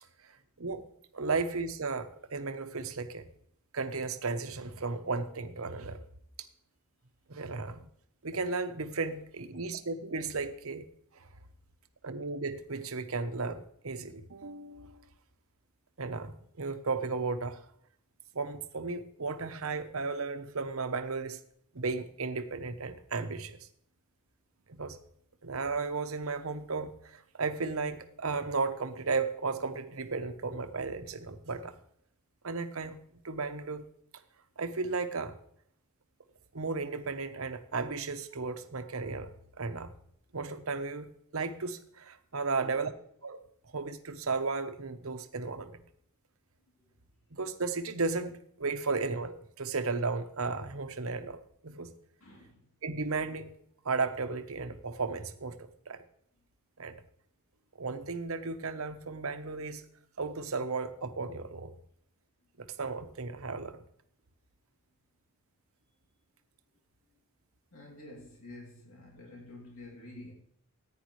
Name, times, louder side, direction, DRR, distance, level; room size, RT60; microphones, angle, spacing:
voice 1, 1.1-3.3 3.7-6.0 7.3-7.9 8.2-10.9 11.1-11.3 12.0-15.0 16.0-17.6 18.3-21.4 21.7-23.6 24.7-25.0 25.4-31.7 32.4-33.8 34.6-35.4 36.5-39.3 39.6-39.9 40.3-42.9 43.2-43.4 43.7-45.8 47.3-51.4 51.6-51.9 52.8-53.6 53.8-56.0 56.8-57.0 57.8-59.8 60.2-61.7 62.6-63.8, right 4 dB, 75° right, 1.0 m, -34 dB
voice 2, 42.5-42.9 46.8-46.9 52.2-52.7 67.7-70.3, left 1 dB, 70° left, 3.0 m, -49 dB
14.5 x 9.4 x 3.2 m
head